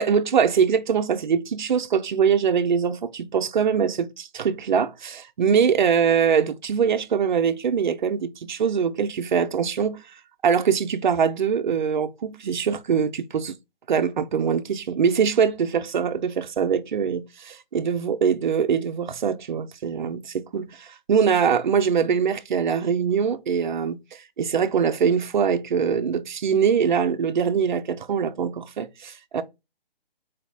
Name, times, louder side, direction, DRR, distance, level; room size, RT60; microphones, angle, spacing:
voice 1, 0.0-10.0 10.4-13.5 13.9-29.4, right 7 dB, 50° right, 0.5 m, -23 dB
4.1 x 2.3 x 3.2 m
figure-of-eight pair, 150°, 30 cm